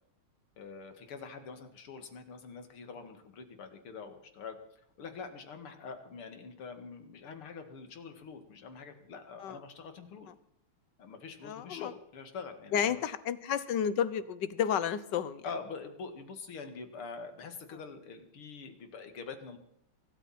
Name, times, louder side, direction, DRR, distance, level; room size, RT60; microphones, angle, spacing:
voice 1, 0.6-4.6 5.0-10.3 11.0-13.0 15.4-19.6, left 5 dB, 90° left, 7 dB, 2.9 m, -45 dB
voice 2, 11.4-11.9 12.7-15.4, left 8 dB, 65° left, 16 dB, 1.4 m, -31 dB
23.5 x 13.0 x 4.3 m, 0.74 s
omnidirectional pair, 2.3 m